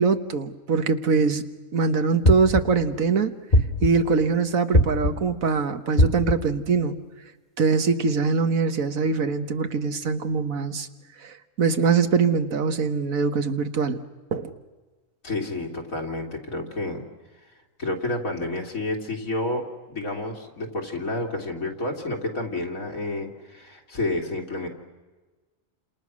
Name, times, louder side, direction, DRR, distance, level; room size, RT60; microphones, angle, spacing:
voice 1, 0.0-1.4 1.7-3.3 3.8-7.0 7.6-10.9 11.2-14.0 14.3-14.5, right 5 dB, 85° right, 9 dB, 1.8 m, -23 dB
sound 1, 2.2-2.9 3.5-4.2 4.7-5.4 6.0-6.6, equal, 35° left, 1.4 m, -21 dB
voice 2, 15.2-17.0 17.8-24.7, left 2 dB, 90° left, 2 dB, 3.3 m, -30 dB
29.5 x 27.0 x 6.3 m, 1.3 s
omnidirectional pair, 1.4 m